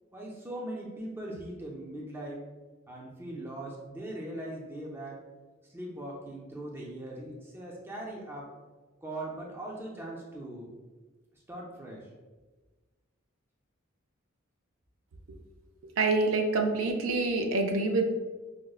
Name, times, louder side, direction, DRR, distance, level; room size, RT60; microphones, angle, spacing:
voice 1, 0.1-2.4 2.9-5.2 5.7-8.5 9.0-10.7 11.5-12.1, right 1 dB, 10° right, -3 dB, 0.4 m, -40 dB
voice 2, 16.0-18.0, right 3 dB, 80° right, 4 dB, 0.4 m, -26 dB
4.9 x 2.0 x 2.3 m, 1.3 s
head